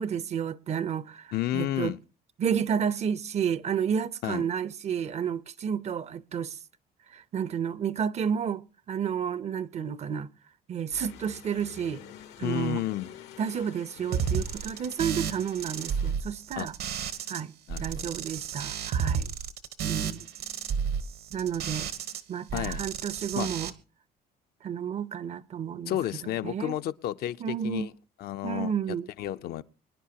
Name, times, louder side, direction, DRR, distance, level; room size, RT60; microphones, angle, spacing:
voice 1, 0.0-1.9 2.4-6.6 7.1-10.3 10.7-12.0 12.4-12.8 13.4-16.7 17.3-17.5 17.8-19.3 19.8-20.3 21.3-21.9 22.3-23.7 24.6-26.0 26.2-26.8 27.4-27.9 28.4-29.1, right 7 dB, 40° right, 0.6 m, -31 dB
voice 2, 1.3-2.0 4.2-4.4 12.4-13.1 16.6-16.7 17.7-18.1 22.5-22.8 23.4-23.5 25.9-27.9 28.2-29.6, left 13 dB, 65° left, 0.6 m, -32 dB
sound 1, 10.9-16.1, left 10 dB, 90° left, 1.2 m, -48 dB
sound 2, 14.1-17.4 17.7-22.2 22.5-23.7, right 7 dB, 70° right, 1.2 m, -32 dB
24.5 x 10.0 x 2.8 m
cardioid pair, 110°, 17 cm